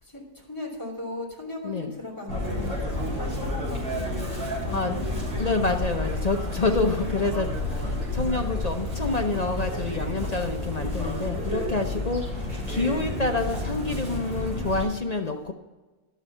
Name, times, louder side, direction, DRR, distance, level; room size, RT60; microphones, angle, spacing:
voice 1, 0.0-6.2 12.4-12.8 13.4-13.6, left 2 dB, 10° left, -2 dB, 3.2 m, -39 dB
Chirp tweet, 2.3-14.8, left 1 dB, 50° right, 4.6 m, -30 dB
voice 2, 5.3-7.5 7.7-12.2 12.7-15.5, left 3 dB, 40° left, 4 dB, 0.6 m, -27 dB
12.0 x 7.2 x 5.6 m, 1.2 s
omnidirectional pair, 1.6 m